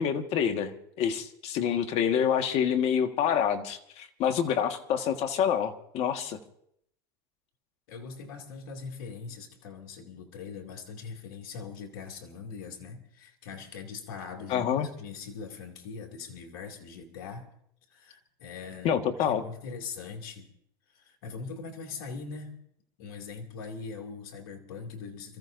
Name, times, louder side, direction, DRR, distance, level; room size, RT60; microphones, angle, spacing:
voice 1, 0.0-6.4 14.5-14.9 18.8-19.4, left 8 dB, 55° left, 7 dB, 1.6 m, -27 dB
voice 2, 7.9-17.5 17.9-20.5 20.9-22.6 23.0-25.4, left 5 dB, 75° left, 3 dB, 2.6 m, -41 dB
29.5 x 14.5 x 2.6 m, 0.71 s
hypercardioid pair, 95°, 13 cm